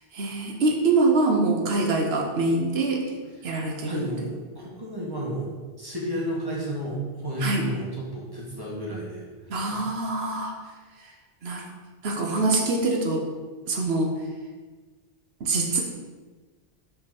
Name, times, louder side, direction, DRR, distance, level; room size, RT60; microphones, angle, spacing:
voice 1, 0.0-3.1 3.4-4.1 7.4-7.7 9.5-10.6 11.0-11.1 11.4-11.7 12.0-13.3 13.7-14.1 15.4-15.8, right 3 dB, 90° right, 1 dB, 1.1 m, -24 dB
voice 2, 3.8-5.5 5.8-9.8, equal, 20° right, -5 dB, 1.6 m, -32 dB
5.6 x 3.8 x 5.9 m, 1.4 s
omnidirectional pair, 1.0 m